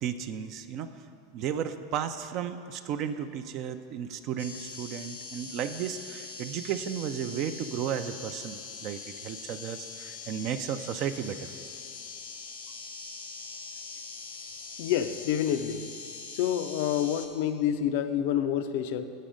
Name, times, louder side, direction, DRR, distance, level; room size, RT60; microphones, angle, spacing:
voice 1, 0.0-0.9 1.3-11.5, right 9 dB, 50° right, 10 dB, 0.3 m, -34 dB
sound 1, 4.4-17.3, left 4 dB, 85° left, 0.9 m, -42 dB
voice 2, 14.8-15.9 16.3-19.0, left 9 dB, 65° left, 10 dB, 0.3 m, -28 dB
7.4 x 5.3 x 5.0 m, 2.6 s
hypercardioid pair, 95°, 0 cm